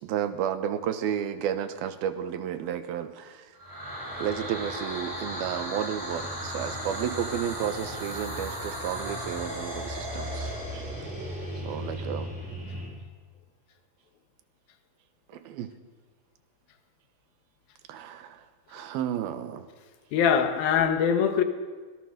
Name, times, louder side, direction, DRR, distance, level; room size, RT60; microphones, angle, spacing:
voice 1, 0.0-3.5 4.2-10.9 11.6-12.3 15.3-15.7 17.9-19.7, right 9 dB, 80° right, 10 dB, 3.0 m, -32 dB
sound 1, 3.6-12.9, equal, 10° right, 6.9 m, -35 dB
voice 2, 20.1-21.4, left 7 dB, 75° left, 8 dB, 3.1 m, -23 dB
23.5 x 18.0 x 6.6 m, 1.4 s
omnidirectional pair, 4.3 m